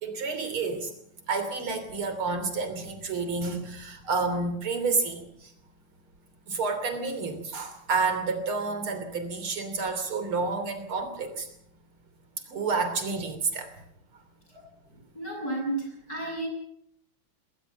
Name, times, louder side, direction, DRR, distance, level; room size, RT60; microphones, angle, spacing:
voice 1, 0.0-0.9 1.3-5.2 6.5-11.5 12.5-13.7 14.6-14.7, right 4 dB, 80° right, 8 dB, 4.0 m, -29 dB
voice 2, 15.2-16.5, right 2 dB, 45° left, 1 dB, 8.7 m, -32 dB
20.5 x 18.5 x 7.2 m, 0.72 s
omnidirectional pair, 2.3 m